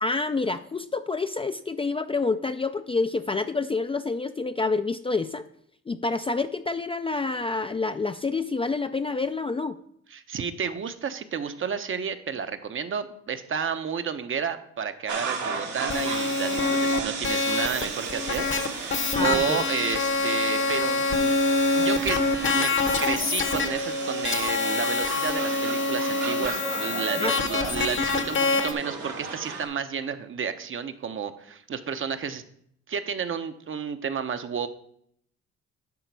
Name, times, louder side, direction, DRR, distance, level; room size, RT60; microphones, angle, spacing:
voice 1, 0.0-5.4 5.9-9.8 19.1-19.7 27.2-27.3, left 3 dB, 20° left, 9 dB, 0.3 m, -28 dB
voice 2, 10.1-21.3 21.8-22.7 23.0-32.4 32.9-34.7, right 7 dB, 45° right, 9 dB, 0.7 m, -31 dB
sound 1, 15.1-29.7, right 5 dB, 80° right, 1.6 m, -35 dB
sound 2, 15.9-28.7, left 3 dB, 40° left, 0.9 m, -26 dB
11.0 x 4.0 x 4.6 m, 0.70 s
cardioid pair, 80°, 29 cm